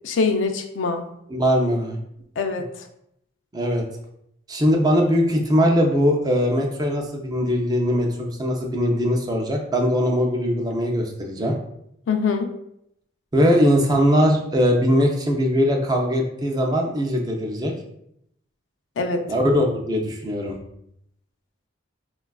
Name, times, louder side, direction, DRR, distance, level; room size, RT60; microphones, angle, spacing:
voice 1, 0.0-1.0 2.4-2.9 12.1-12.5 19.0-19.2, left 4 dB, 80° left, 5 dB, 0.4 m, -23 dB
voice 2, 1.3-2.0 3.5-3.8 4.5-11.6 13.3-17.7 19.3-20.6, equal, 20° right, 1 dB, 0.4 m, -20 dB
4.1 x 2.3 x 2.2 m, 0.75 s
head